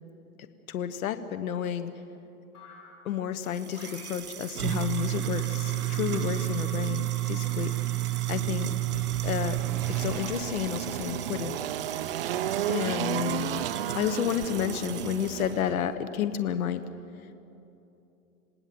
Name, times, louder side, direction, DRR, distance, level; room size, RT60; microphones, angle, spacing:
voice 1, 0.7-1.9 3.0-7.7 8.3-8.7 9.2-9.6 9.9-11.6 12.7-13.6 13.9-16.8, left 9 dB, 70° left, 10 dB, 1.3 m, -31 dB
sound 1, 2.5-3.1 3.7-4.3 4.6-11.1, left 2 dB, 50° left, 8.0 m, -49 dB
sound 2, 3.5-15.5, right 14 dB, 80° right, 2.0 m, -32 dB
Engine, 8.3-15.7, right 11 dB, 40° right, 0.6 m, -33 dB
27.0 x 18.5 x 7.8 m, 2.9 s
hypercardioid pair, 160°, 44 cm